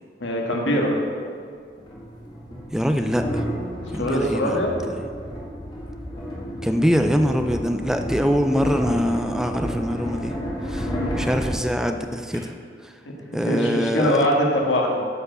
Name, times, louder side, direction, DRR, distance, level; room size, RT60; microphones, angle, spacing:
voice 1, 0.2-1.1 3.9-4.7 10.8-11.1 13.3-15.0, equal, 80° left, -1 dB, 1.6 m, -22 dB
sound 1, 0.7-0.8 1.8-12.4, equal, 25° left, 1.6 m, -31 dB
voice 2, 2.7-3.4 3.9-4.6 6.6-10.3 10.7-12.5 12.8-12.9 13.3-14.3, equal, 5° right, 6 dB, 0.4 m, -23 dB
8.7 x 4.6 x 6.7 m, 2.2 s
head